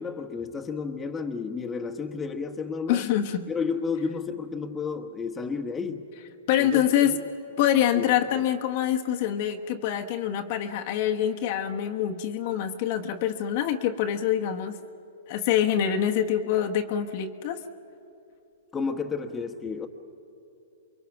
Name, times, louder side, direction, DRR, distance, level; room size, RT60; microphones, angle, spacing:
voice 1, 0.0-3.0 3.5-6.1 6.6-7.2 7.6-8.4 18.7-19.9, left 5 dB, 15° left, 4 dB, 1.3 m, -32 dB
voice 2, 2.9-3.4 6.5-7.1 7.6-14.8 15.3-17.6, left 10 dB, 50° left, 4 dB, 1.2 m, -25 dB
28.0 x 23.0 x 6.0 m, 2.8 s
hypercardioid pair, 125°, 0 cm